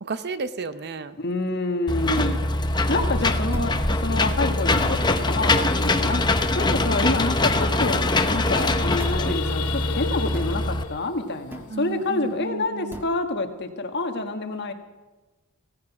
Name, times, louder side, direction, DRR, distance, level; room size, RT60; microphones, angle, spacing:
voice 1, 0.0-1.2 11.7-13.0, right 4 dB, 50° right, 13 dB, 0.7 m, -33 dB
voice 2, 1.2-2.4 2.9-7.5 7.8-8.0 8.3-14.7, left 2 dB, 50° left, 5 dB, 1.6 m, -27 dB
Engine / Mechanisms, 1.9-10.8, left 2 dB, 20° left, 0.9 m, -23 dB
sound 1, 2.2-2.5 3.5-3.8 4.8-5.1 5.8-6.1 7.0-7.2 7.8-8.0 8.9-9.4 10.3-10.6 11.5-11.7 12.9-13.2, equal, 10° right, 1.5 m, -39 dB
sound 2, 8.4-12.4, left 8 dB, 90° left, 0.9 m, -36 dB
17.0 x 14.5 x 6.0 m, 1.2 s
head